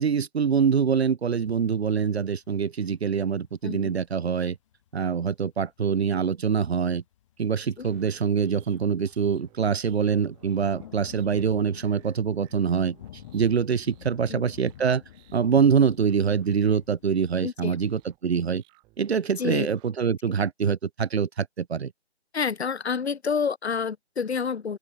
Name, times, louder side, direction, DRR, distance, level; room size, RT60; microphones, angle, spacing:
voice 1, 0.0-4.6 4.9-7.0 7.4-13.0 13.3-15.0 15.3-18.6 19.0-21.9, right 6 dB, 65° right, 0.7 m, -24 dB
sound 1, 1.2-17.2, left 12 dB, 25° left, 5.1 m, -51 dB
sound 2, 7.8-19.9, right 22 dB, 15° right, 4.0 m, -60 dB
voice 2, 17.4-17.8 19.4-19.7 22.3-24.8, left 6 dB, 70° left, 0.9 m, -28 dB
open air
figure-of-eight pair, 150°, 34 cm